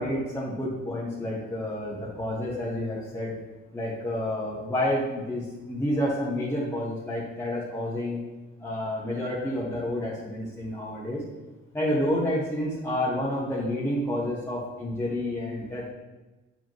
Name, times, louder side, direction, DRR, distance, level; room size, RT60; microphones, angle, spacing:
voice 1, 0.0-3.3 3.7-8.2 8.6-11.2 11.7-15.9, left 1 dB, 10° left, -6 dB, 1.3 m, -29 dB
6.9 x 5.0 x 3.1 m, 1.2 s
cardioid pair, 90°, 30 cm